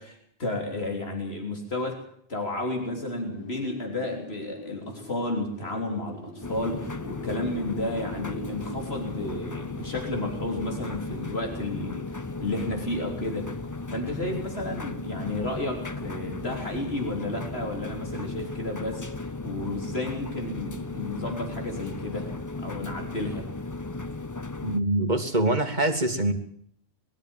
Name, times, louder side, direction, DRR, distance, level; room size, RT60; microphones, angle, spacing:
voice 1, 0.0-2.0 2.3-13.6 13.9-22.3 22.6-23.5, left 2 dB, 85° left, 2 dB, 3.8 m, -32 dB
Wind, 2.7-11.4, left 1 dB, 65° left, 1.9 m, -43 dB
sound 1, 6.4-24.8, left 3 dB, 20° left, 0.8 m, -36 dB
voice 2, 24.6-26.3, right 2 dB, 45° right, 5 dB, 2.5 m, -24 dB
22.5 x 13.0 x 9.0 m, 0.67 s
omnidirectional pair, 1.0 m